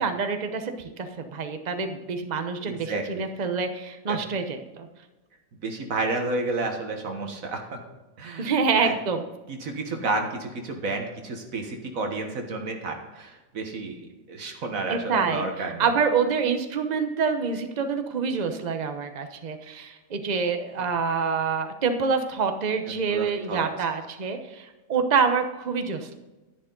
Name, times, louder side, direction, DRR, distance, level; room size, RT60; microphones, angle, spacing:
voice 1, 0.0-4.9 8.4-9.2 14.9-26.1, right 5 dB, 35° right, 7 dB, 1.0 m, -26 dB
voice 2, 2.6-3.2 4.1-4.2 5.6-7.8 8.2-8.5 8.8-8.9 9.5-15.9 20.8-20.9 22.9-23.7, right 3 dB, 80° right, 3 dB, 1.8 m, -31 dB
11.0 x 10.5 x 3.9 m, 1.1 s
omnidirectional pair, 1.4 m